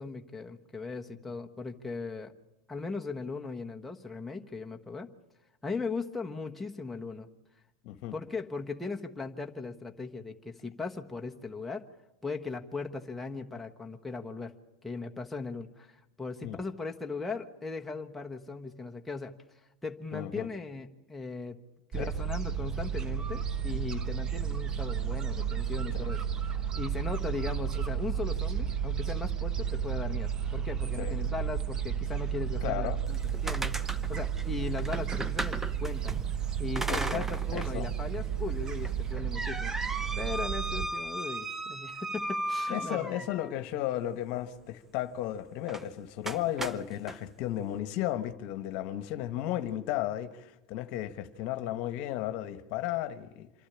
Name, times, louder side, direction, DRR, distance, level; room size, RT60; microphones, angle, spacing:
voice 1, 0.0-2.3 2.7-5.1 5.6-7.3 8.1-11.9 12.2-14.5 14.8-15.9 16.2-19.3 19.8-21.6 21.9-26.2 26.5-36.2 36.6-43.1, left 4 dB, 5° left, 1.3 m, -38 dB
voice 2, 7.8-8.1 16.4-16.6 20.1-20.5 22.0-22.1 26.0-26.1 31.0-31.1 32.6-33.0 36.9-37.9 42.7-53.5, left 13 dB, 55° left, 1.2 m, -34 dB
Gull seagull, 21.9-40.9, right 8 dB, 30° right, 1.2 m, -32 dB
sound 1, 33.1-36.2 36.8-37.8 38.1-38.2 38.8-43.5 45.7-45.9 46.3-47.2, right 2 dB, 10° right, 0.9 m, -36 dB
26.5 x 12.0 x 9.9 m
hypercardioid pair, 110°, 2 cm